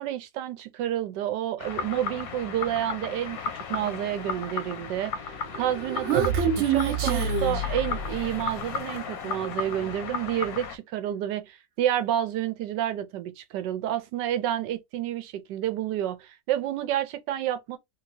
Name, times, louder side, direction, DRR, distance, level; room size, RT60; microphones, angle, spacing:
voice 1, 0.0-17.8, right 12 dB, 80° right, 1.2 m, -29 dB
sound 1, 1.6-10.8, left 6 dB, 65° left, 1.0 m, -35 dB
Human voice, 5.5-8.5, right 6 dB, 60° right, 0.7 m, -27 dB
3.2 x 2.8 x 2.7 m
omnidirectional pair, 1.9 m